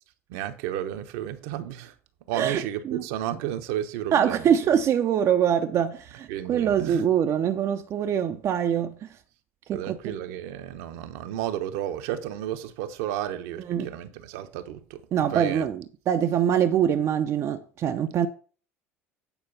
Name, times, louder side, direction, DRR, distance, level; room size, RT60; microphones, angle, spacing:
voice 1, 0.3-1.9 2.3-4.4 6.3-7.0 9.7-15.0 15.3-15.6, right 11 dB, 65° right, 0.9 m, -32 dB
voice 2, 2.3-3.0 4.1-9.1 9.7-10.1 13.7-13.9 15.1-18.3, right 9 dB, 45° right, 0.7 m, -24 dB
9.0 x 4.6 x 5.7 m
hypercardioid pair, 70°, 7 cm